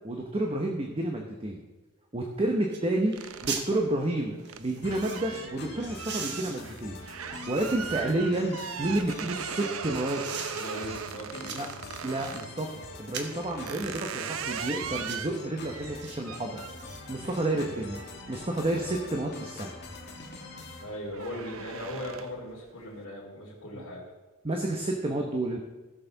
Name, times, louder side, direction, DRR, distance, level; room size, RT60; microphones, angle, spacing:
voice 1, 0.0-1.6 2.1-3.2 3.4-7.0 7.5-10.3 11.5-11.7 12.0-16.6 17.1-19.7 23.7-23.8 24.4-25.6, right 1 dB, 30° right, 1 dB, 1.0 m, -30 dB
sound 1, 2.2-2.3 2.7-2.9 3.1-3.7 4.4-5.2 5.8-8.1 8.6-9.7 10.2-10.7 11.1-12.4 13.0-13.4 14.0-14.3 14.9-15.3 16.0-16.2 16.5-17.4 17.7-17.8, right 6 dB, 55° right, 1.2 m, -41 dB
sound 2, 3.2-12.5 13.1-19.6 20.0-20.4 20.7-22.5, right 7 dB, 75° right, 0.6 m, -39 dB
sound 3, 4.8-20.8, left 2 dB, 55° left, 1.9 m, -44 dB
voice 2, 10.5-11.6 20.8-24.0, equal, 75° left, -8 dB, 2.9 m, -38 dB
16.5 x 6.7 x 4.0 m, 1.2 s
head